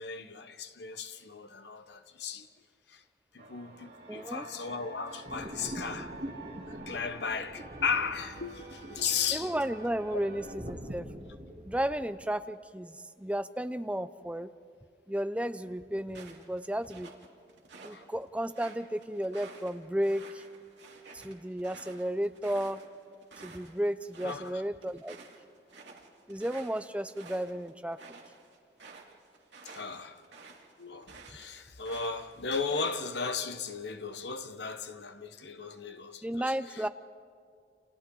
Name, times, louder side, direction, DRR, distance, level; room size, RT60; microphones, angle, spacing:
voice 1, 0.0-2.5 2.9-3.0 3.3-6.2 6.7-9.5 10.1-10.2 17.9-18.0 24.2-24.6 29.6-30.2 30.8-36.9, left 5 dB, 70° left, 1.1 m, -36 dB
sound 1, 3.4-10.6, right 3 dB, 60° right, 2.5 m, -49 dB
voice 2, 4.1-4.4 9.3-11.1 11.6-14.5 15.1-17.1 17.8-20.4 21.1-22.8 23.4-25.2 26.3-28.0 36.2-36.9, right 1 dB, 5° right, 0.5 m, -33 dB
sound 2, 5.2-12.0, equal, 40° right, 2.9 m, -44 dB
sound 3, 16.1-18.0 18.4-23.7 24.0-24.5 24.8-31.5 31.8-33.3, right 4 dB, 80° right, 2.6 m, -51 dB
29.5 x 29.0 x 4.0 m
head